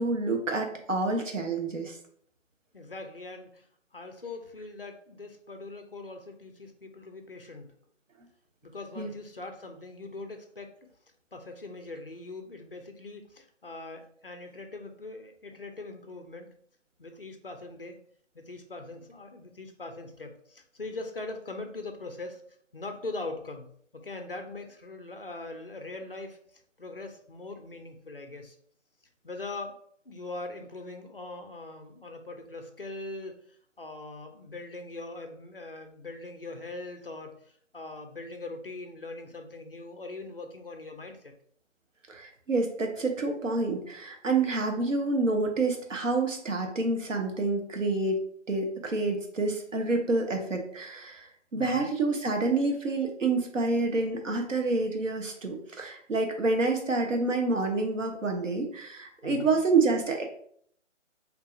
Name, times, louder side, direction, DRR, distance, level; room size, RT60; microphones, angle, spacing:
voice 1, 0.0-2.0 9.0-9.1 42.1-48.2 48.5-60.2, right 3 dB, 85° right, 3 dB, 1.1 m, -28 dB
voice 2, 2.7-3.7 3.9-7.7 8.6-10.9 11.3-16.5 17.0-18.0 18.3-22.4 22.7-23.7 23.9-28.6 29.2-29.8 30.1-41.3 51.5-51.9 59.2-59.6, left 2 dB, 50° left, 5 dB, 0.5 m, -41 dB
4.6 x 2.8 x 2.6 m, 0.63 s
hypercardioid pair, 180°, 37 cm